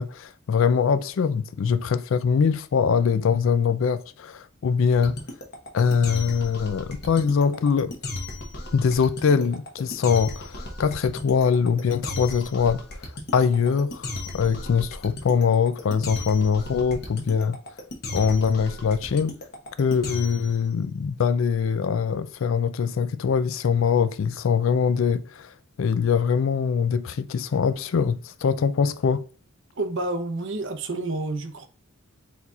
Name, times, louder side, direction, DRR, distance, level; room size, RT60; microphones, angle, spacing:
voice 1, 0.0-5.2 5.7-8.0 8.7-12.8 13.3-17.6 18.1-19.4 19.8-25.5 25.8-29.3, left 6 dB, 65° left, 0.4 m, -23 dB
sound 1, 4.9-20.6, left 2 dB, 50° left, 1.0 m, -35 dB
voice 2, 29.8-31.7, right 2 dB, 60° right, 0.7 m, -29 dB
4.4 x 4.0 x 2.3 m
head